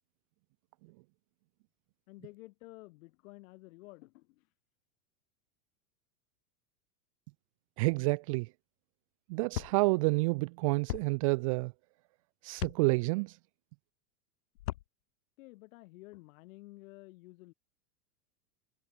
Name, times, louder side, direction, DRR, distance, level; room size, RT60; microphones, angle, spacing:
voice 1, 2.1-4.5 15.4-17.5, left 21 dB, 60° left, 6.6 m, -52 dB
voice 2, 7.8-8.5 9.3-11.7 12.4-13.4, right 27 dB, 25° right, 0.3 m, -29 dB
sound 1, 9.5-9.7 10.9-11.0 12.6-12.8 14.5-14.9, left 15 dB, 80° left, 3.1 m, -36 dB
supercardioid pair, 155°, 46 cm